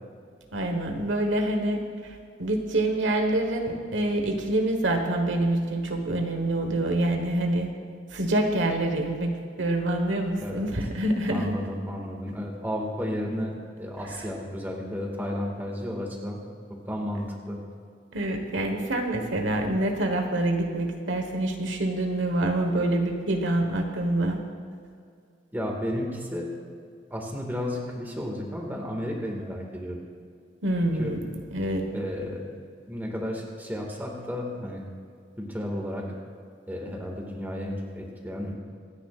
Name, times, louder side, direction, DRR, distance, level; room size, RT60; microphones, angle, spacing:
voice 1, 0.5-1.8 2.4-7.7 8.1-11.5 18.1-24.4 30.6-31.2 31.5-31.9, right 1 dB, 85° right, 4 dB, 1.4 m, -26 dB
voice 2, 10.4-10.7 11.3-16.4 16.9-17.6 25.5-26.5 27.1-30.0 31.0-31.1 31.9-32.6 32.9-34.8 35.4-36.1 36.7-38.5, equal, 10° right, -1 dB, 1.9 m, -32 dB
25.0 x 10.0 x 2.5 m, 2.3 s
head